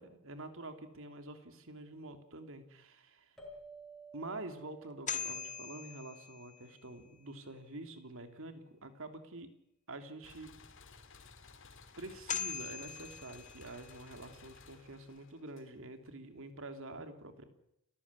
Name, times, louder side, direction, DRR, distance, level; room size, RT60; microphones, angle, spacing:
voice 1, 0.0-3.4 4.1-9.5 9.9-10.7 12.0-17.4, right 2 dB, 65° right, 8 dB, 3.2 m, -47 dB
sound 1, 3.4-6.4, right 2 dB, ahead, 6.7 m, -54 dB
sound 2, 4.8-7.0 11.9-12.0 12.3-14.2, left 6 dB, 35° left, 2.0 m, -41 dB
sound 3, 10.2-16.1, left 4 dB, 60° left, 2.7 m, -57 dB
30.0 x 15.0 x 9.9 m, 0.81 s
head